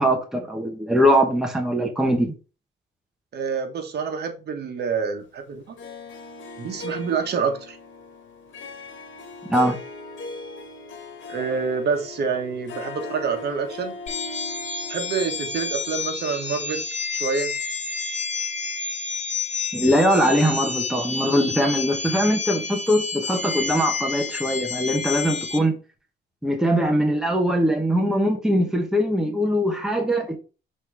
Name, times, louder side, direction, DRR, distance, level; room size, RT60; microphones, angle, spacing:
voice 1, 0.0-2.3 9.5-9.8 19.7-25.8 26.4-30.4, equal, 5° right, 1.0 m, -21 dB
voice 2, 3.3-5.6 6.6-7.8 11.3-13.9 14.9-16.8 17.2-17.6, right 5 dB, 60° right, 1.4 m, -27 dB
Harp, 5.8-16.9, left 3 dB, 90° left, 1.3 m, -39 dB
sound 1, 14.1-25.6, left 4 dB, 40° left, 1.4 m, -30 dB
6.3 x 3.8 x 4.7 m
wide cardioid pair, 170°, 19 cm